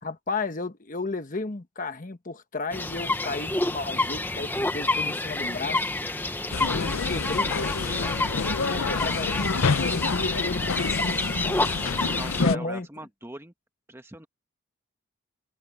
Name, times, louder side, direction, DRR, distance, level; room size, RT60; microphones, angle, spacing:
voice 1, 0.0-5.9 6.7-8.2 8.7-9.3 9.8-11.2 11.4-12.9, left 3 dB, 40° left, 1.1 m, -34 dB
sound 1, 2.7-12.5, left 2 dB, 10° left, 0.9 m, -28 dB
sound 2, 6.5-12.6, left 4 dB, 80° left, 0.7 m, -28 dB
voice 2, 9.6-10.0 11.7-13.5 13.9-14.3, right 1 dB, 10° right, 1.3 m, -42 dB
head